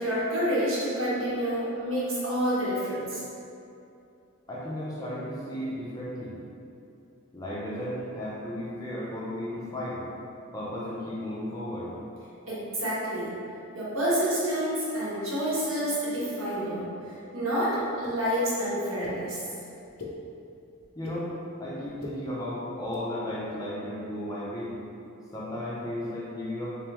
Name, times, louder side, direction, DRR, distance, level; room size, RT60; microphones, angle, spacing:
voice 1, 0.0-3.2 12.5-13.3 13.7-16.8 17.3-19.4, equal, 70° right, -10 dB, 1.3 m, -28 dB
voice 2, 4.5-6.4 7.3-10.0 10.5-11.9 21.0-21.3 21.6-24.8 25.3-26.8, left 1 dB, 15° left, -7 dB, 0.5 m, -34 dB
sound 1, 18.0-18.1 19.0-19.2 19.8-20.1 20.8-21.2 21.8-22.1 22.8-23.0, left 4 dB, 90° left, 0.6 m, -40 dB
3.4 x 3.3 x 3.0 m, 2.7 s
head